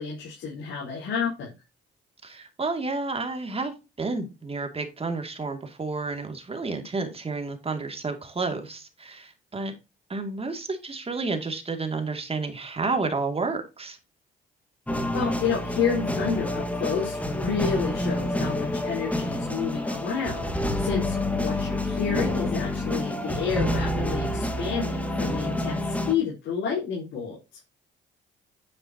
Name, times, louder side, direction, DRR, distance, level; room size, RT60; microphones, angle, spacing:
voice 1, 0.0-1.5 15.1-27.4, left 6 dB, 80° left, -5 dB, 4.1 m, -30 dB
voice 2, 2.2-9.7 10.1-14.0, right 3 dB, 30° right, 5 dB, 2.3 m, -31 dB
sound 1, 14.9-26.1, left 1 dB, 5° left, 1.6 m, -28 dB
9.6 x 7.8 x 2.8 m, 0.27 s
cardioid pair, 90°, 20 cm